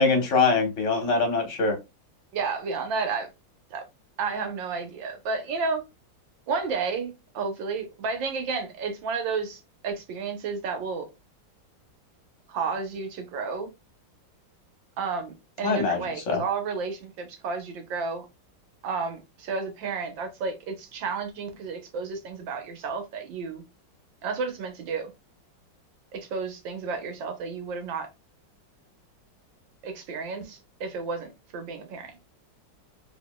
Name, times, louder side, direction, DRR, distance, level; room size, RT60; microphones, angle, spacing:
voice 1, 0.0-1.8 15.6-16.0 16.3-16.4, left 4 dB, 45° left, 1.3 m, -23 dB
voice 2, 2.3-3.3 3.7-3.8 4.2-5.8 6.5-11.1 12.5-13.7 15.0-18.3 18.8-23.6 24.2-25.1 26.1-28.1 29.8-32.2, right 4 dB, 80° right, 1.7 m, -32 dB
4.2 x 3.5 x 2.2 m
omnidirectional pair, 2.0 m